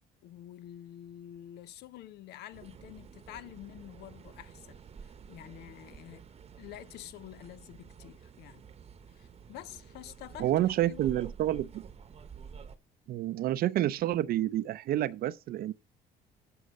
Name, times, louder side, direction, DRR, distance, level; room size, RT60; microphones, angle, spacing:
voice 1, 0.2-6.2 6.6-8.6 9.1-11.3, left 12 dB, 80° left, 0.7 m, -48 dB
sound 1, 2.5-12.8, right 6 dB, 35° right, 0.9 m, -50 dB
voice 2, 10.4-11.8 13.1-15.7, right 13 dB, 60° right, 0.5 m, -29 dB
9.7 x 5.5 x 5.3 m
cardioid pair, 110°, 17 cm